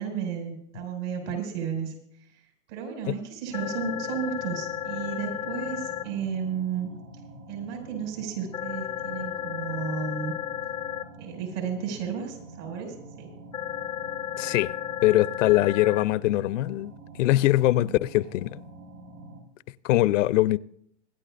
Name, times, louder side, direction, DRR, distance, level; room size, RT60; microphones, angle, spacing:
voice 1, 0.0-1.9 2.7-6.9 7.5-10.3 11.2-13.3, right 7 dB, 65° right, 5.7 m, -33 dB
sound 1, 3.5-6.0 8.5-11.0 13.5-16.0, left 11 dB, 15° left, 0.4 m, -33 dB
sound 2, 3.5-19.4, right 2 dB, 85° right, 3.7 m, -46 dB
voice 2, 14.4-14.7 15.0-18.6 19.8-20.6, left 16 dB, 70° left, 0.5 m, -22 dB
25.5 x 11.5 x 2.5 m
hypercardioid pair, 120°, 39 cm